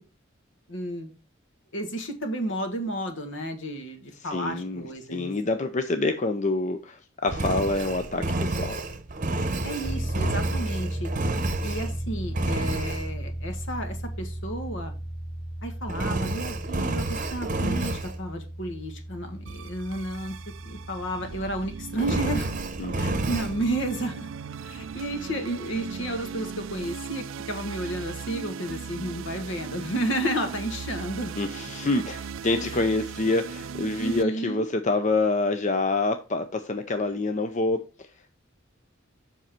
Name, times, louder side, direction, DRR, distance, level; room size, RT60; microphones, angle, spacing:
voice 1, 0.7-1.1 1.7-5.3 9.6-11.1 11.6-14.9 15.6-20.4 20.6-22.5 22.9-24.3 24.6-31.4 32.6-32.8 34.0-34.7, right 1 dB, 65° left, 1.7 m, -32 dB
voice 2, 4.2-8.8 22.8-23.3 31.4-38.1, left 2 dB, 40° left, 0.6 m, -27 dB
Engine, 7.3-12.0 12.3-13.1 15.9-18.2 22.0-23.5, right 2 dB, 40° right, 0.9 m, -29 dB
sound 1, 9.8-26.2, right 1 dB, 10° right, 1.4 m, -36 dB
sound 2, 19.5-34.2, right 6 dB, 70° right, 0.4 m, -38 dB
7.5 x 5.5 x 4.4 m
head